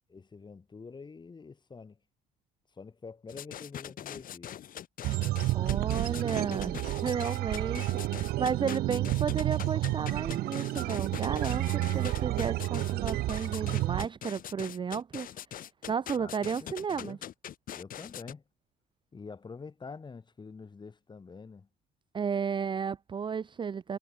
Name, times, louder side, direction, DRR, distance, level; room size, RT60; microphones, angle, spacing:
voice 1, 0.1-2.0 2.7-4.6 16.1-17.2 17.7-18.4 19.1-21.7, left 4 dB, 25° left, 6.9 m, -46 dB
sound 1, 3.3-18.3, left 11 dB, 55° left, 2.3 m, -42 dB
sound 2, 5.0-14.1, right 17 dB, 65° right, 0.4 m, -30 dB
voice 2, 5.5-15.3 15.9-17.2 22.1-24.0, right 6 dB, 30° right, 0.6 m, -33 dB
cardioid pair, 110°, 17 cm